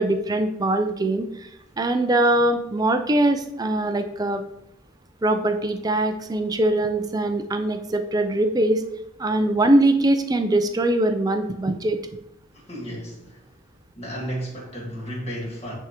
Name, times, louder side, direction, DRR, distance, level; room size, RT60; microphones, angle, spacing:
voice 1, 0.0-1.5 1.8-4.4 5.2-8.8 9.2-12.0, right 1 dB, 20° right, 7 dB, 0.5 m, -22 dB
voice 2, 12.5-13.4 14.0-15.7, equal, 35° left, -3 dB, 1.7 m, -34 dB
9.5 x 3.6 x 3.0 m, 0.82 s
head